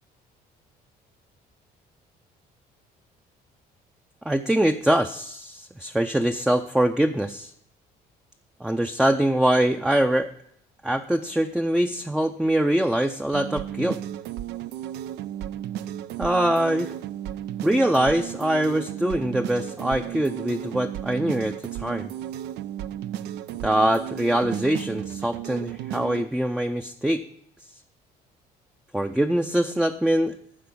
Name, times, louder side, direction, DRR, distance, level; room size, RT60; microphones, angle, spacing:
voice 1, 4.2-7.5 8.6-10.3 10.8-14.0 16.2-16.9 17.6-22.1 23.6-27.2 28.9-30.3, right 1 dB, 5° right, 5 dB, 0.5 m, -23 dB
sound 1, 13.3-26.3, right 11 dB, 80° right, 0.5 m, -34 dB
12.0 x 4.7 x 8.3 m, 0.69 s
cardioid pair, 110°, 17 cm